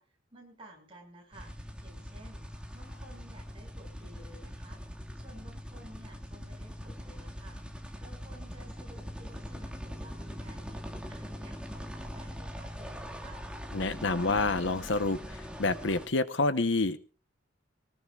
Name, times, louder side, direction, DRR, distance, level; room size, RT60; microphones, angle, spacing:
voice 1, 0.0-1.5 1.8-2.4 2.7-4.8 5.2-7.6 8.0-13.4, right 1 dB, 25° right, 1 dB, 6.6 m, -54 dB
sound 1, 1.3-16.1, equal, 5° right, 2.0 m, -42 dB
voice 2, 13.7-17.0, left 3 dB, 65° left, 12 dB, 1.0 m, -28 dB
23.5 x 19.0 x 2.4 m, 0.37 s
head